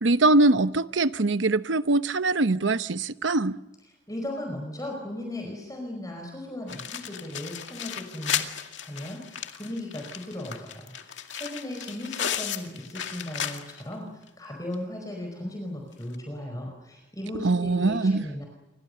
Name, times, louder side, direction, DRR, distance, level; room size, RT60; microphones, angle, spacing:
voice 1, 0.0-3.5 17.4-18.3, right 2 dB, 90° right, 0.9 m, -22 dB
voice 2, 4.1-8.4 8.8-18.5, left 1 dB, 20° left, 4.9 m, -37 dB
sound 1, 6.7-13.9 14.3-14.4 14.7-14.8 16.0-16.2, left 9 dB, 85° left, 2.2 m, -34 dB
28.5 x 25.0 x 6.8 m
head